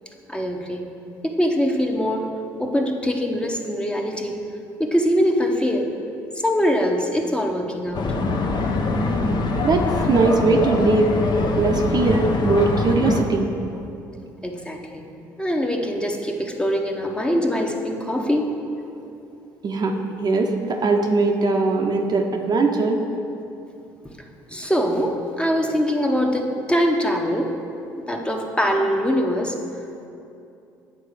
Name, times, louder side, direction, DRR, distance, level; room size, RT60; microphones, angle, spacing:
voice 1, 0.3-0.8 1.2-4.4 4.8-5.9 6.4-8.1 14.4-15.1 15.4-18.5 24.5-27.6 28.1-29.6, equal, 10° left, 2 dB, 0.8 m, -23 dB
sound 1, 7.9-13.2, left 3 dB, 45° left, 0.7 m, -23 dB
voice 2, 8.9-9.3 9.6-11.1 11.5-13.5 19.6-23.0, right 3 dB, 45° right, 3 dB, 0.7 m, -20 dB
9.1 x 3.8 x 4.9 m, 2.7 s
hypercardioid pair, 60°, 10 cm